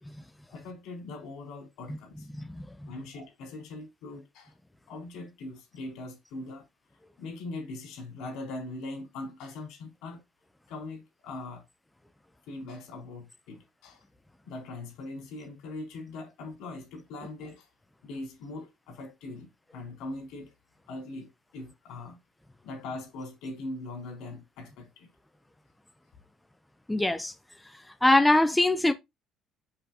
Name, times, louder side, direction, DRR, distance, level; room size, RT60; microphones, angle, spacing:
voice 1, 0.5-2.3 2.9-4.5 4.9-6.6 7.2-10.2 10.7-11.6 12.5-14.0 14.4-17.7 18.0-20.5 20.9-22.2 22.6-25.1, left 2 dB, 80° left, 4.6 m, -41 dB
voice 2, 26.9-27.3 28.0-28.9, left 2 dB, 5° left, 0.6 m, -22 dB
7.8 x 6.2 x 2.8 m
cardioid pair, 140°, 0 cm